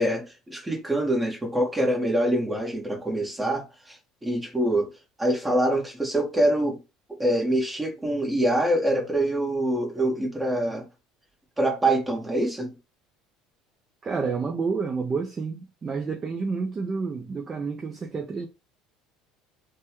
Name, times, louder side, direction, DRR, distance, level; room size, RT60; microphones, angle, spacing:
voice 1, 0.0-3.9 4.2-4.9 5.2-6.8 7.2-10.9 11.6-12.7, right 1 dB, 10° right, 1.4 m, -25 dB
voice 2, 14.0-18.5, right 4 dB, 25° right, 0.5 m, -29 dB
3.3 x 2.2 x 3.0 m
cardioid pair, 135°, 0 cm